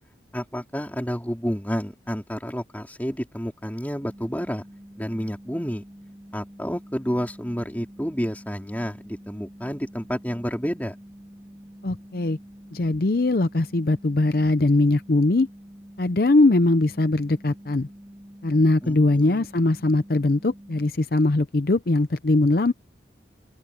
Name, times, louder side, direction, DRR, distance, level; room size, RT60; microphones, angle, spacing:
voice 1, 0.3-4.6 5.0-5.8 6.3-11.0 18.8-19.5, equal, 10° left, 3.5 m, -30 dB
sound 1, 4.0-20.9, equal, 15° right, 5.2 m, -46 dB
voice 2, 11.8-12.4 12.7-15.5 16.0-17.9 18.4-22.7, left 2 dB, 55° left, 0.6 m, -21 dB
open air
head